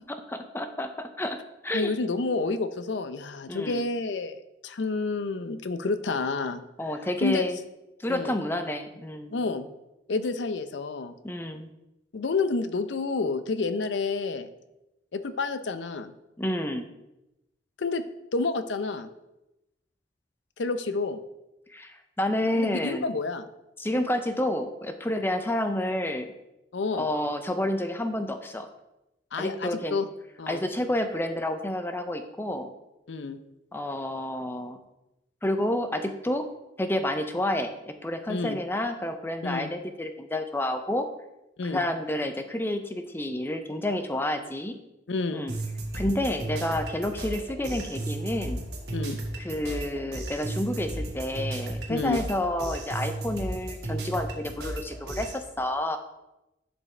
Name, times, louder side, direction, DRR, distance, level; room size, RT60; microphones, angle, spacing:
voice 1, 0.1-1.4 1.6-1.9 3.5-3.8 6.8-7.6 8.0-9.4 11.2-11.7 16.4-16.9 21.7-23.1 23.8-26.3 26.9-28.7 29.4-30.0 30.5-32.7 33.7-34.8 35.4-36.5 36.8-41.1 41.6-44.7 45.3-45.5 45.9-48.6 49.4-56.0, left 1 dB, 15° left, 7 dB, 0.5 m, -29 dB
voice 2, 1.7-6.6 7.2-7.5 8.1-8.3 9.3-9.7 10.1-11.1 12.1-14.5 15.1-16.1 17.8-18.0 18.3-19.1 20.6-21.2 22.6-23.5 26.7-27.1 29.3-30.1 30.4-30.6 33.1-33.4 38.3-38.6 39.4-39.7 41.6-41.8 45.1-45.4 48.9-49.2 51.9-52.2, left 3 dB, 90° left, 11 dB, 0.6 m, -29 dB
sound 1, 45.5-55.4, right 1 dB, 65° right, 1.4 m, -34 dB
11.0 x 5.2 x 3.3 m, 0.94 s
head